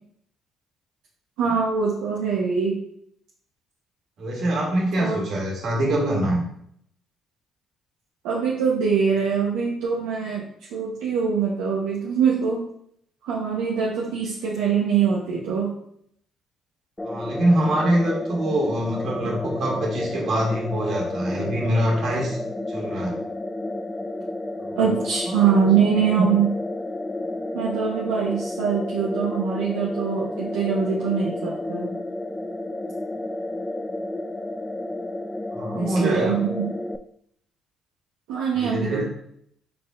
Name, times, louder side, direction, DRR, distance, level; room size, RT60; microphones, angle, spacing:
voice 1, 1.4-2.7 5.0-5.2 8.2-10.4 10.7-12.6 13.2-15.7 24.8-26.5 27.5-31.9 35.7-36.7 38.3-39.0, right 6 dB, 90° right, -5 dB, 0.8 m, -23 dB
voice 2, 4.2-6.4 17.0-22.4 22.7-23.1 24.6-25.0 25.3-25.5 35.5-36.4 38.5-39.1, right 1 dB, 65° right, -2 dB, 1.7 m, -24 dB
sound 1, 17.0-37.0, left 1 dB, 15° left, 0.3 m, -31 dB
5.0 x 4.3 x 2.4 m, 0.69 s
supercardioid pair, 70°, 0 cm